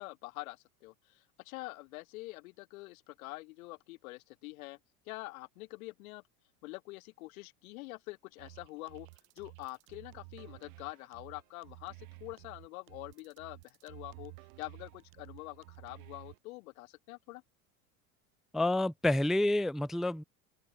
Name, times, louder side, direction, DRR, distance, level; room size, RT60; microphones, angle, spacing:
voice 1, 0.0-4.8 5.1-6.2 6.6-9.1 9.4-17.4, left 21 dB, 75° left, 0.9 m, -46 dB
sound 1, 8.4-16.4, right 26 dB, 70° right, 2.8 m, -53 dB
voice 2, 18.5-20.2, left 1 dB, ahead, 0.4 m, -28 dB
open air
hypercardioid pair, 95°, 42 cm